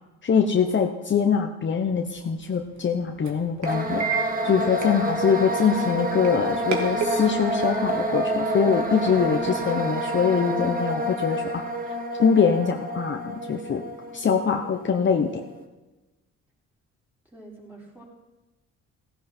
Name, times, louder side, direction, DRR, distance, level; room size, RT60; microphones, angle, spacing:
voice 1, 0.2-4.1 4.4-11.6 12.2-13.8 14.1-15.4, left 6 dB, 40° left, 3 dB, 1.0 m, -23 dB
sound 1, 1.8-9.7, right 4 dB, 65° right, 2.5 m, -35 dB
sound 2, 3.6-15.5, right 1 dB, 30° right, 1.7 m, -28 dB
voice 2, 17.3-18.0, right 2 dB, 5° right, -4 dB, 5.0 m, -46 dB
16.5 x 11.0 x 4.5 m, 1.1 s
cardioid pair, 90°, 30 cm